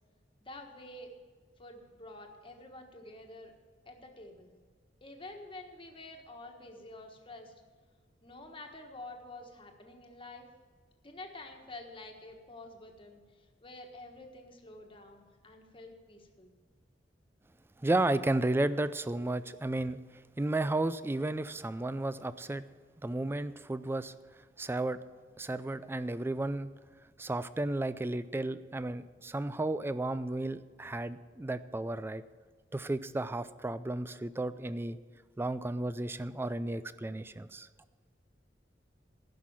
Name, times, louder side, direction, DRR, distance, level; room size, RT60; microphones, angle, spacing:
voice 1, 0.4-1.1 1.6-3.5 3.8-4.5 5.0-7.5 8.2-10.5 11.0-16.5, left 2 dB, 30° left, 3 dB, 1.4 m, -48 dB
voice 2, 17.8-20.0 20.4-22.7 23.0-24.1 24.6-25.0 25.4-26.7 27.2-32.2 32.7-35.0 35.4-37.7, right 2 dB, 15° right, 14 dB, 0.3 m, -33 dB
15.5 x 6.1 x 7.2 m, 1.5 s
head